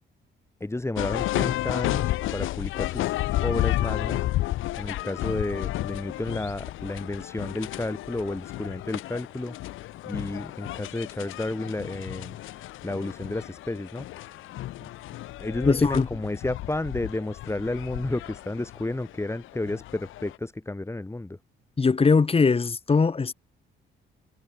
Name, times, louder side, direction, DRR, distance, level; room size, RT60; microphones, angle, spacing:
voice 1, 0.6-14.4 14.8-14.9 15.4-21.4, left 2 dB, 15° left, 6.3 m, -32 dB
sound 1, 0.9-20.4, left 16 dB, 90° left, 2.7 m, -32 dB
voice 2, 15.7-16.1 21.8-23.3, left 4 dB, 30° left, 2.4 m, -21 dB
cardioid pair, 90°, 20 cm